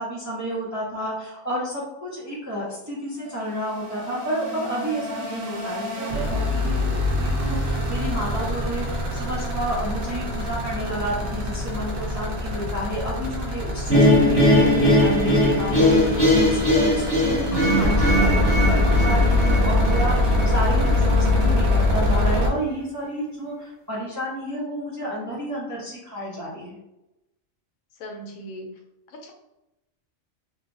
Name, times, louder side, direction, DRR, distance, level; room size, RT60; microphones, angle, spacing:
voice 1, 0.0-6.9 7.2-26.8, right 1 dB, 25° right, -6 dB, 0.4 m, -31 dB
sound 1, 3.2-22.5, left 2 dB, 80° right, 1.2 m, -24 dB
sound 2, 13.9-21.0, left 1 dB, 20° left, 0.7 m, -20 dB
voice 2, 17.4-17.7 28.0-28.7 29.1-29.3, equal, 85° left, 2 dB, 1.1 m, -39 dB
3.1 x 2.3 x 2.5 m, 0.90 s
omnidirectional pair, 1.4 m